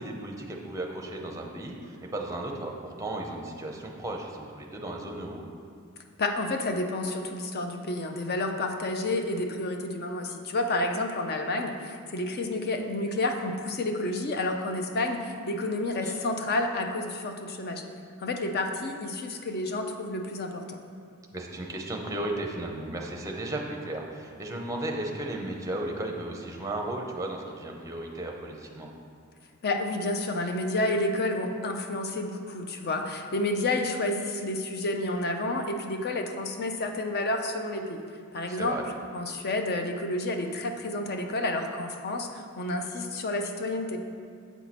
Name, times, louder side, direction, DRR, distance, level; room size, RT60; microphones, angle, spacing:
voice 1, 0.0-5.4 15.9-16.1 21.3-28.9 38.5-38.8, right 1 dB, 15° right, 1 dB, 0.6 m, -35 dB
voice 2, 6.2-17.8 18.2-20.8 29.6-38.0 38.3-38.8 39.1-44.0, left 2 dB, 45° left, 5 dB, 0.5 m, -30 dB
8.0 x 4.5 x 4.2 m, 2.3 s
head